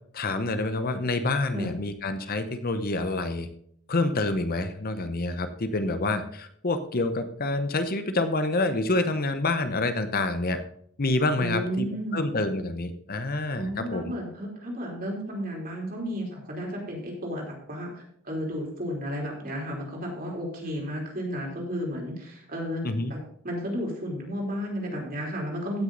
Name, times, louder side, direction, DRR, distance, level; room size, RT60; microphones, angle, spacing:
voice 1, 0.1-3.5 3.9-10.6 11.0-11.9 12.1-14.0 22.8-23.1, left 2 dB, 45° left, 9 dB, 0.8 m, -27 dB
voice 2, 11.4-12.3 13.6-22.8 23.1-23.2 23.4-25.8, equal, 40° right, -1 dB, 3.7 m, -33 dB
15.5 x 6.3 x 3.9 m, 0.66 s
head